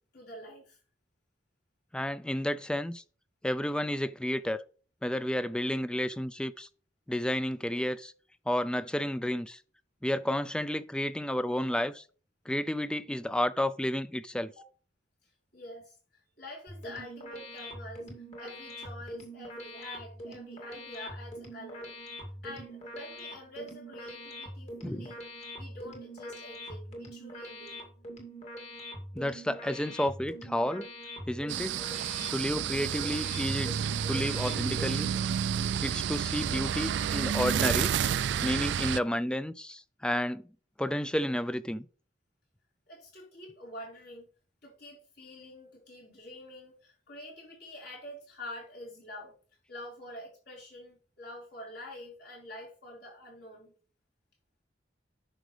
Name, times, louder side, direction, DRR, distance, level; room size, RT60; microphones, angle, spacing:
voice 1, 0.1-0.8 14.6-14.7 15.2-18.1 18.4-21.9 22.4-25.2 25.5-27.9 31.3-31.4 42.9-44.3 44.6-49.3 49.7-53.7, left 1 dB, 65° left, 4.7 m, -46 dB
voice 2, 1.9-3.0 3.4-4.6 5.0-6.7 7.1-8.1 8.5-9.6 10.0-12.0 12.5-14.5 24.8-25.1 29.1-30.9 31.3-31.8 32.3-33.7 34.1-35.1 35.8-37.9 38.4-40.4 40.8-41.9, left 1 dB, 5° left, 0.3 m, -31 dB
sound 1, 16.7-35.2, equal, 40° left, 2.4 m, -43 dB
sound 2, 31.5-39.0, right 8 dB, 80° right, 0.3 m, -30 dB
9.9 x 6.1 x 3.3 m
head